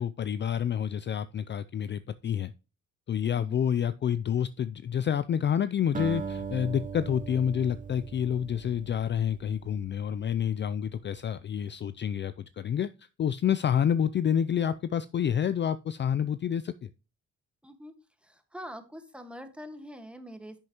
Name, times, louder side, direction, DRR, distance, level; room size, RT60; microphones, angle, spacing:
voice 1, 0.0-2.5 3.1-16.9, left 8 dB, 40° left, 0.4 m, -28 dB
voice 2, 3.2-3.6 17.6-17.9 18.2-20.5, equal, 5° right, 1.5 m, -44 dB
Acoustic guitar, 5.9-10.4, right 5 dB, 25° right, 0.8 m, -39 dB
10.0 x 6.4 x 2.9 m
cardioid pair, 90°, 30 cm